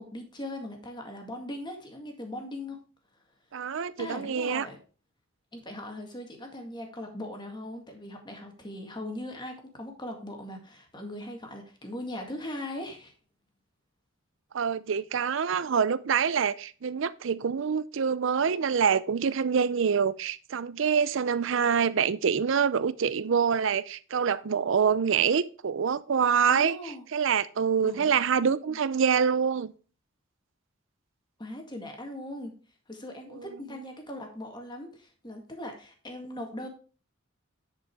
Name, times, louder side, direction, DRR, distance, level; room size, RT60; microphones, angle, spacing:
voice 1, 0.0-2.8 4.0-4.8 5.5-13.1 26.5-27.0 27.8-28.1 28.4-28.8 31.4-32.5 32.9-36.7, left 1 dB, 20° left, 1.9 m, -39 dB
voice 2, 3.5-4.7 14.5-26.8 27.1-29.7, right 6 dB, 65° right, 0.5 m, -26 dB
10.0 x 5.2 x 4.7 m
head